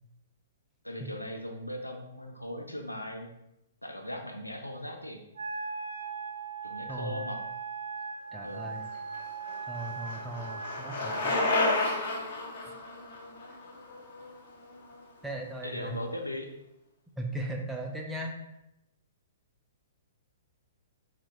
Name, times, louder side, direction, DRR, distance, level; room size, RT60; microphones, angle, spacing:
voice 1, 0.8-3.3 3.8-5.2 6.6-7.4 8.4-8.7 15.6-16.5, left 1 dB, 85° left, 2 dB, 0.5 m, -38 dB
Wind instrument woodwind instrument, 5.3-11.9, right 5 dB, 60° right, 0.6 m, -39 dB
voice 2, 6.9-7.3 8.3-8.9 9.7-11.3 15.2-16.0 17.2-18.4, right 1 dB, 5° right, 1 dB, 0.4 m, -37 dB
Bicycle, 8.9-14.9, left 2 dB, 45° left, 0.6 m, -32 dB
4.4 x 2.1 x 2.8 m, 0.88 s
figure-of-eight pair, 115°, 0 cm